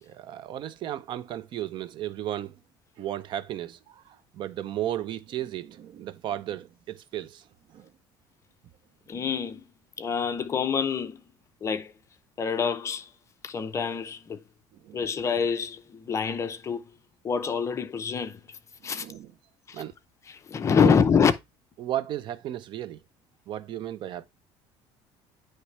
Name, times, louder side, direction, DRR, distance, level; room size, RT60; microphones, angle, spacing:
voice 1, 0.0-2.5 3.0-7.4 7.7-7.9 14.8-15.0 18.8-19.3 19.7-19.9 20.8-21.0 21.8-23.0 23.5-24.2, right 12 dB, 50° right, 0.5 m, -34 dB
voice 2, 9.1-9.6 10.0-11.2 11.6-11.9 12.4-13.1 13.4-14.4 14.9-16.9 17.2-18.6 18.8-19.1 19.7-19.8 20.3-21.3, left 6 dB, 25° left, 0.6 m, -26 dB
9.4 x 3.2 x 3.1 m
cardioid pair, 130°, 11 cm